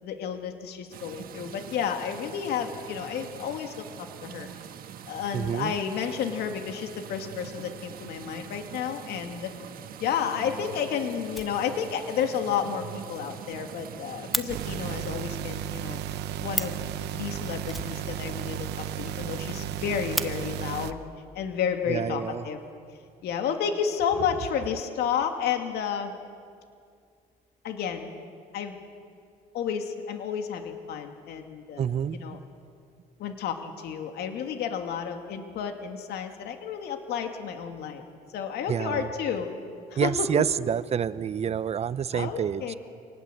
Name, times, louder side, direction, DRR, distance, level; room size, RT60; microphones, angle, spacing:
voice 1, 0.0-4.5 5.1-9.5 10.0-16.0 16.4-16.8 17.1-21.0 21.3-22.6 23.2-26.1 27.6-28.1 28.5-28.8 29.5-31.9 32.1-32.4 33.2-38.0 38.3-39.5 39.9-40.5 42.1-42.8, left 7 dB, 75° left, 5 dB, 2.5 m, -31 dB
sound 1, 0.9-15.1, right 9 dB, 60° right, 1.4 m, -43 dB
voice 2, 5.3-5.7 21.9-22.5 31.8-32.2 38.7-39.1 40.0-42.7, right 8 dB, 40° right, 16 dB, 0.8 m, -28 dB
Fire, 11.2-12.1 12.4-12.5 12.8-12.9 13.2-13.3 13.5-14.5 16.2-16.3 16.5-16.9 17.7-18.6 18.9-19.0 19.3-19.4 19.8-20.3 21.3-21.4 22.1-22.7, equal, ahead, 1.1 m, -34 dB
sound 2, 14.5-20.9, right 10 dB, 80° right, 1.0 m, -34 dB
26.5 x 19.5 x 8.1 m, 2.2 s
cardioid pair, 110°, 17 cm